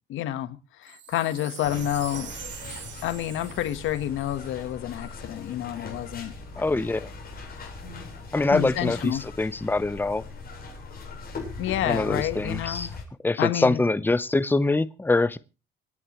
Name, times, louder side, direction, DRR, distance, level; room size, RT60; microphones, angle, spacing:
voice 1, 0.1-2.3 3.0-6.3 8.5-9.2 11.6-12.9 13.4-13.8, left 12 dB, 85° left, 1.3 m, -29 dB
Wind chime, 0.8-5.2 5.8-5.9, right 10 dB, 65° right, 1.6 m, -44 dB
sound 1, 1.6-13.0, left 3 dB, 50° left, 7.5 m, -40 dB
voice 2, 6.6-7.1 8.3-10.2 11.8-12.9 13.2-15.4, left 2 dB, 10° left, 0.8 m, -24 dB
26.5 x 9.9 x 3.0 m
cardioid pair, 90°, 20 cm